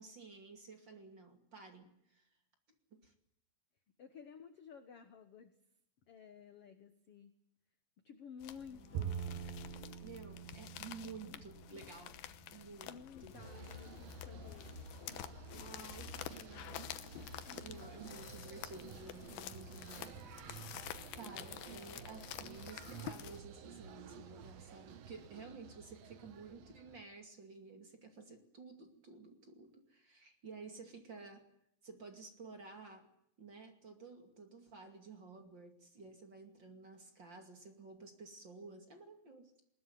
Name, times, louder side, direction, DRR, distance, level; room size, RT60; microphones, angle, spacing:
voice 1, 0.0-2.3 2.9-3.1 8.7-9.3 10.0-12.2 12.5-12.9 13.2-13.7 15.5-16.9 17.6-31.5 31.8-33.1 33.4-39.5, right 4 dB, 35° right, 5 dB, 2.6 m, -53 dB
voice 2, 4.0-5.5 6.1-7.3 8.0-9.3 10.9-11.4 12.8-14.8 17.5-18.0, left 6 dB, 60° left, 9 dB, 1.5 m, -54 dB
sound 1, 8.4-23.4, left 12 dB, 85° left, 2.9 m, -49 dB
Bowed string instrument, 8.9-12.3, right 9 dB, 80° right, 2.9 m, -44 dB
sound 2, 13.3-27.0, right 5 dB, 60° right, 1.8 m, -52 dB
20.5 x 20.0 x 9.3 m, 0.77 s
omnidirectional pair, 4.3 m